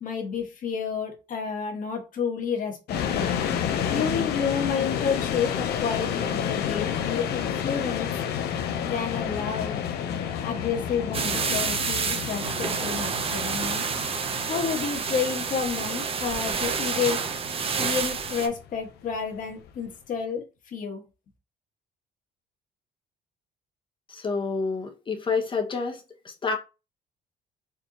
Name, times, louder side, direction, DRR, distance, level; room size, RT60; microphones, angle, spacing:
voice 1, 0.0-3.3 3.9-8.1 8.8-9.8 10.4-13.8 14.5-17.2 17.8-21.0, left 6 dB, 50° left, 1.7 m, -30 dB
sound 1, 2.9-19.9, left 8 dB, 70° left, 0.8 m, -31 dB
sound 2, 11.1-18.5, right 5 dB, 35° right, 0.8 m, -29 dB
voice 2, 24.1-26.6, left 4 dB, 30° left, 1.2 m, -29 dB
4.6 x 3.4 x 2.9 m
cardioid pair, 110°, 17 cm